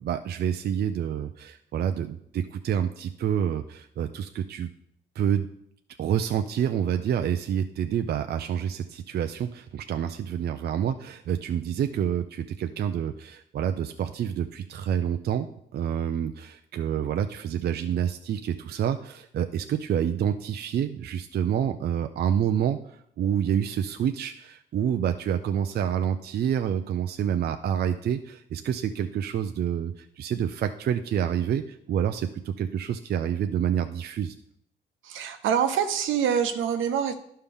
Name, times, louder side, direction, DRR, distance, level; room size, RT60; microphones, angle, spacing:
voice 1, 0.0-4.7 5.2-5.5 6.0-22.8 23.2-34.3, right 9 dB, 55° right, 7 dB, 0.5 m, -28 dB
voice 2, 35.0-37.1, right 8 dB, 80° right, 7 dB, 0.9 m, -25 dB
11.5 x 5.5 x 3.6 m, 0.72 s
cardioid pair, 90°, 20 cm